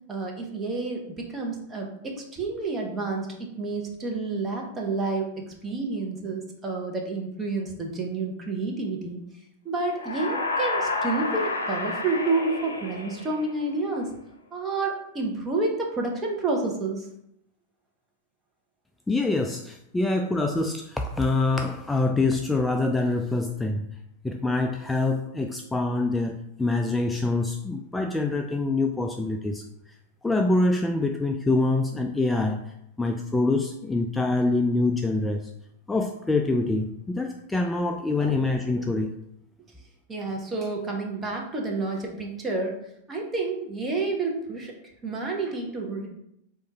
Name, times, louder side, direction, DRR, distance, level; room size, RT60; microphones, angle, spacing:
voice 1, 0.1-9.2 9.6-14.1 14.5-17.1 38.2-38.4 38.8-38.9 40.1-42.8 43.1-44.7 45.0-46.1, right 3 dB, 25° right, 1 dB, 1.0 m, -29 dB
sound 1, 9.9-13.8, left 3 dB, 85° left, 0.6 m, -30 dB
voice 2, 19.1-23.9 24.2-29.6 30.2-32.6 33.0-35.5 35.9-39.1, left 2 dB, 10° left, 4 dB, 0.3 m, -25 dB
3.6 x 2.6 x 4.1 m, 0.77 s
hypercardioid pair, 100°, 0 cm